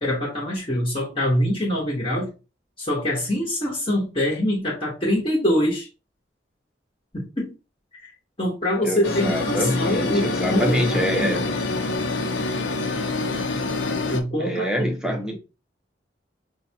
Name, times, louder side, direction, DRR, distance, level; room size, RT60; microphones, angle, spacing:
voice 1, 0.0-2.3 2.8-5.9 7.1-7.5 8.4-11.4 14.1-14.7 15.0-15.4, left 1 dB, 30° left, 1.0 m, -24 dB
voice 2, 8.8-11.4 14.4-15.4, equal, 5° right, 0.7 m, -25 dB
sound 1, 9.0-14.2, left 3 dB, 90° left, 0.6 m, -26 dB
5.4 x 2.2 x 2.7 m
head